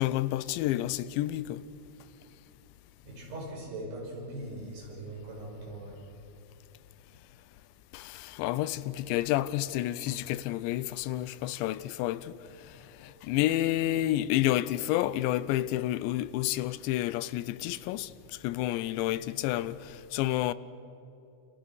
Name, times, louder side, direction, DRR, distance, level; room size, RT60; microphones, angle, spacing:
voice 1, 0.0-1.6 7.9-12.3 13.0-18.1 18.4-20.5, left 14 dB, 90° left, 3.0 m, -30 dB
voice 2, 3.0-6.0, right 1 dB, 65° right, 8.0 m, -40 dB
28.5 x 28.0 x 6.3 m
omnidirectional pair, 5.1 m